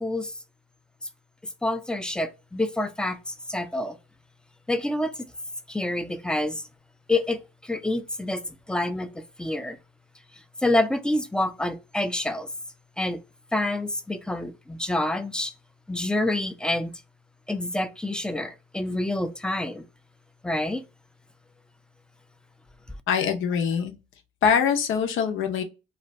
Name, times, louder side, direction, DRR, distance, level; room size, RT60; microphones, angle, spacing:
voice 1, 0.0-0.3 1.6-4.0 4.7-5.3 5.7-6.6 7.1-9.8 10.6-12.5 13.0-13.2 13.5-15.5 15.9-16.9 17.5-19.9 20.4-20.8, left 1 dB, 5° left, 0.3 m, -27 dB
voice 2, 23.1-23.9 24.4-25.6, left 7 dB, 80° left, 0.6 m, -23 dB
2.4 x 2.2 x 3.9 m
cardioid pair, 90°, 20 cm